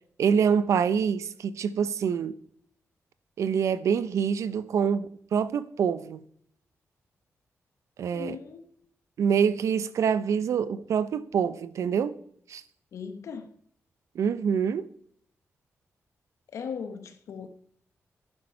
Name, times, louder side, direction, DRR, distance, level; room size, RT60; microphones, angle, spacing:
voice 1, 0.2-2.4 3.4-6.2 8.0-8.4 9.2-12.1 12.5-12.6 14.1-14.8, right 7 dB, 85° right, 0.8 m, -26 dB
voice 2, 8.1-8.7 12.9-13.5 16.5-17.5, left 6 dB, 75° left, 1.0 m, -38 dB
11.0 x 9.6 x 5.7 m
wide cardioid pair, 175°, 5 cm